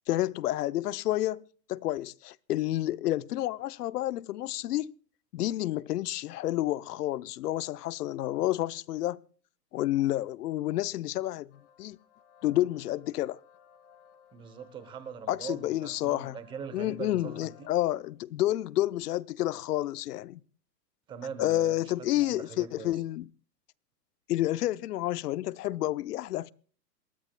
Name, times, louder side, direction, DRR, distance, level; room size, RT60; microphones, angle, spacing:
voice 1, 0.1-1.4 1.7-4.9 5.3-9.2 9.7-11.5 11.8-12.0 12.4-13.4 15.3-16.4 16.7-20.4 21.4-23.3 24.3-26.5, left 15 dB, 70° left, 0.7 m, -29 dB
sound 1, 11.5-18.1, left 7 dB, 45° left, 2.8 m, -61 dB
voice 2, 14.3-17.7 21.1-23.0, right 6 dB, 10° right, 0.8 m, -42 dB
27.5 x 13.5 x 2.2 m
hypercardioid pair, 160°, 50 cm